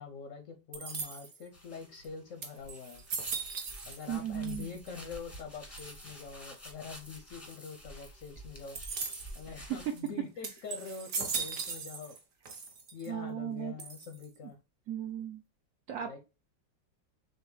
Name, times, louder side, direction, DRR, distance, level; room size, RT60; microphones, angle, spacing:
voice 1, 0.0-3.0 3.9-8.8 9.3-12.2 12.9-14.6 16.0-16.2, left 6 dB, 65° left, 6 dB, 0.8 m, -44 dB
sound 1, 0.7-1.5 2.0-2.1 2.4-4.2 4.4-5.0 5.8-6.2 8.8-9.4 10.0-10.1 10.4-12.2 12.5-13.1 13.8-14.4, right 5 dB, 55° right, 1.2 m, -39 dB
sound 2, 1.5-10.0, equal, 10° left, 0.8 m, -50 dB
voice 2, 4.1-4.7 13.1-13.7 14.9-15.4 15.9-16.1, right 9 dB, 70° right, 5 dB, 0.7 m, -36 dB
6.8 x 2.3 x 3.1 m, 0.29 s
omnidirectional pair, 1.9 m